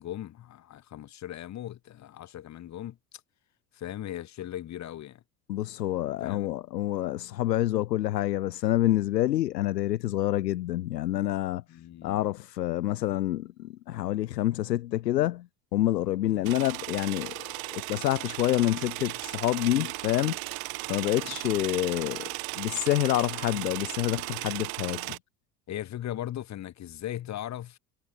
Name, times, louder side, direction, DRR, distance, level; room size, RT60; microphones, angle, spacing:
voice 1, 0.0-3.0 3.7-5.2 6.2-6.5 11.7-12.3 16.2-16.5 21.1-21.4 25.7-27.8, left 12 dB, 35° left, 1.4 m, -38 dB
voice 2, 5.5-11.6 12.0-20.4 20.9-22.3 22.6-25.2, left 14 dB, 80° left, 0.7 m, -27 dB
sound 1, 16.4-25.2, right 28 dB, 45° right, 0.8 m, -36 dB
figure-of-eight pair, 65°, 49 cm